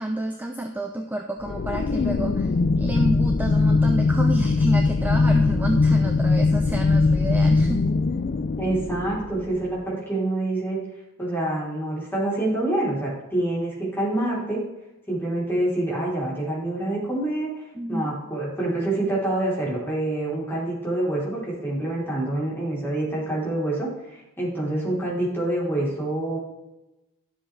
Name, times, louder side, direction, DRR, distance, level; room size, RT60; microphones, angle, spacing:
voice 1, 0.0-7.9 17.7-18.1, right 1 dB, 10° right, 3 dB, 0.7 m, -29 dB
sound 1, 1.4-9.7, left 3 dB, 40° left, 0.4 m, -21 dB
voice 2, 8.6-10.8 11.2-14.6 15.1-17.5 17.9-26.4, right 1 dB, 10° left, -5 dB, 3.8 m, -26 dB
12.0 x 7.5 x 3.4 m, 0.98 s
head